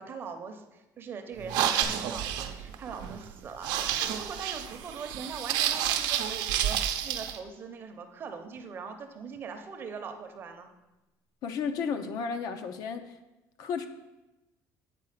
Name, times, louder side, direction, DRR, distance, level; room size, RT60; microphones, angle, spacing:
voice 1, 0.0-10.7, right 5 dB, 30° right, 6 dB, 0.7 m, -41 dB
sound 1, 1.4-7.4, right 10 dB, 85° right, 0.6 m, -30 dB
sound 2, 1.8-3.8 4.1-4.2, left 1 dB, 85° left, 1.5 m, -48 dB
voice 2, 11.4-13.1 13.6-13.9, left 6 dB, 60° left, 8 dB, 0.7 m, -33 dB
8.4 x 4.7 x 6.6 m, 1.0 s
cardioid pair, 175°, 7 cm